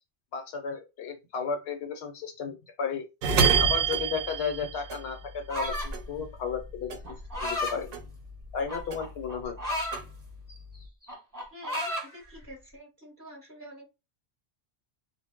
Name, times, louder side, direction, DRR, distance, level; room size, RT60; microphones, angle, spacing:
voice 1, 0.3-3.0 3.6-7.0 7.4-8.0 8.5-9.6, left 6 dB, 65° left, 0.9 m, -34 dB
sound 1, 3.2-5.7 5.9-7.6 7.9-9.3 9.7-10.8, right 6 dB, 60° right, 0.7 m, -28 dB
sound 2, 5.5-6.0 7.1-7.8 8.7-10.0 10.5-10.8 11.0-12.1, left 1 dB, 20° right, 0.8 m, -32 dB
voice 2, 11.5-13.8, equal, 15° left, 0.7 m, -47 dB
2.2 x 2.0 x 3.4 m
omnidirectional pair, 1.2 m